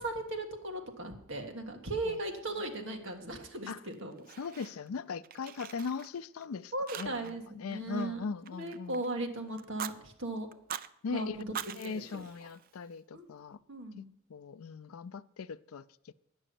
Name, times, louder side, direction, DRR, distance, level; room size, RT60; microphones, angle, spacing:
voice 1, 0.0-4.2 6.7-8.2 8.6-10.5 11.1-11.5 11.8-12.2 13.1-13.3 13.7-14.1, right 2 dB, 65° right, 1.7 m, -37 dB
Fire, 3.9-5.0 5.2-6.5 6.9-7.4 7.7-9.1 9.6-10.0 10.5-10.9 11.4-13.0, right 8 dB, 45° right, 0.4 m, -43 dB
voice 2, 4.4-9.0 11.0-11.4 11.7-13.6 14.0-14.1 14.3-16.1, left 5 dB, 90° left, 0.4 m, -39 dB
9.9 x 6.2 x 8.5 m
head